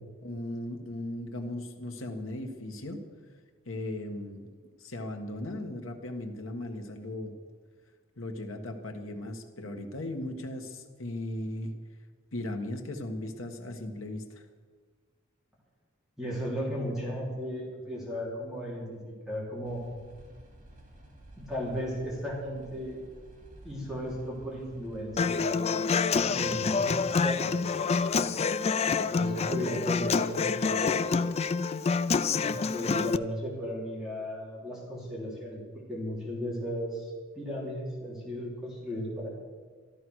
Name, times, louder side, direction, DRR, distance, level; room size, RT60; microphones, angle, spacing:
voice 1, 0.2-3.0 3.7-4.5 4.8-7.3 8.2-11.7 12.3-14.4, left 1 dB, 70° left, 4 dB, 1.7 m, -37 dB
voice 2, 16.2-19.0 19.2-19.8 21.4-23.0 23.6-25.6 26.3-26.9 27.2-27.5 29.1-31.3 32.4-39.3, equal, 5° right, -5 dB, 3.4 m, -35 dB
sound 1, 19.6-25.3, right 1 dB, 40° right, 2.8 m, -52 dB
Human voice / Acoustic guitar, 25.2-33.2, left 5 dB, 30° left, 0.4 m, -27 dB
13.5 x 13.0 x 6.4 m, 1.5 s
head